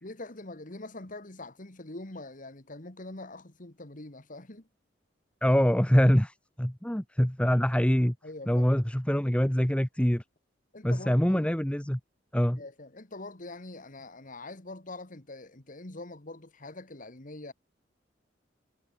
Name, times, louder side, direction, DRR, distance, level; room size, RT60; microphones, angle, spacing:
voice 1, 0.0-4.7 8.2-8.7 10.7-11.5 12.6-17.5, left 2 dB, 45° left, 2.0 m, -44 dB
voice 2, 5.4-8.1 8.5-10.2 10.8-12.0 12.3-12.6, equal, 5° left, 1.0 m, -24 dB
head